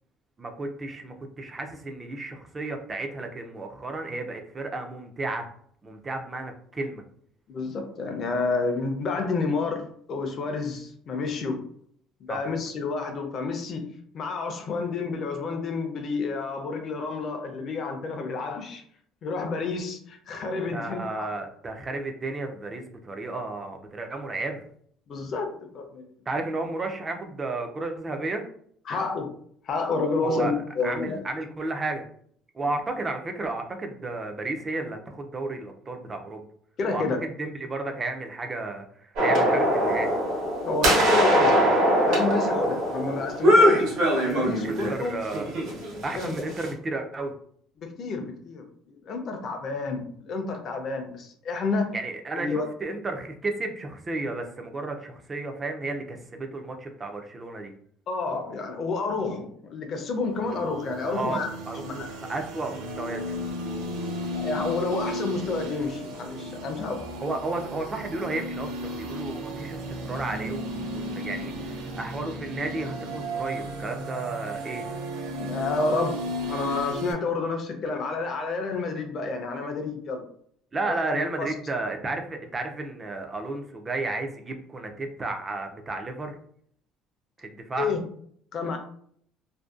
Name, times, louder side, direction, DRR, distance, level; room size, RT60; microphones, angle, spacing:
voice 1, 0.4-5.5 5.8-7.0 12.3-12.5 20.7-24.6 26.3-28.5 30.2-30.5 30.8-32.0 32.5-36.5 36.9-40.1 44.6-45.6 46.0-47.3 51.9-57.7 61.1-63.3 67.2-74.9 80.7-86.3 87.4-87.9, right 2 dB, 20° right, 5 dB, 0.3 m, -33 dB
voice 2, 7.5-11.6 12.3-13.9 14.1-18.8 19.2-21.3 25.1-26.0 28.9-29.3 29.6-31.2 36.8-37.2 40.6-41.7 42.0-45.1 46.1-46.3 47.8-51.9 52.4-52.7 58.1-61.5 61.8-62.1 64.3-67.1 75.4-80.2 80.9-81.5 87.8-88.0 88.5-88.8, left 3 dB, 40° left, 4 dB, 0.4 m, -30 dB
sound 1, 39.2-44.9 45.3-46.7, equal, 70° right, 0.9 m, -22 dB
sound 2, 60.2-77.1, equal, 85° right, 0.4 m, -34 dB
2.5 x 2.1 x 2.3 m, 0.62 s
cardioid pair, 150°, 0 cm